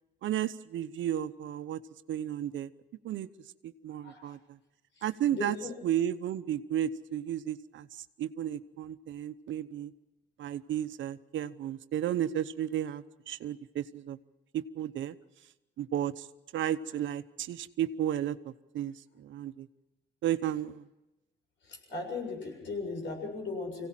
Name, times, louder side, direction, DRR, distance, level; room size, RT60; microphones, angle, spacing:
voice 1, 0.2-1.8 2.1-2.7 3.0-3.3 3.6-4.4 5.0-5.5 5.8-9.9 10.4-14.2 14.5-15.2 15.8-16.3 16.5-19.7 20.2-20.9, right 11 dB, 75° right, 12 dB, 0.9 m, -33 dB
voice 2, 4.0-4.4 5.0-5.7 21.6-23.9, left 3 dB, 70° left, 2 dB, 7.3 m, -38 dB
25.0 x 17.0 x 7.6 m, 1.0 s
cardioid pair, 90°, 20 cm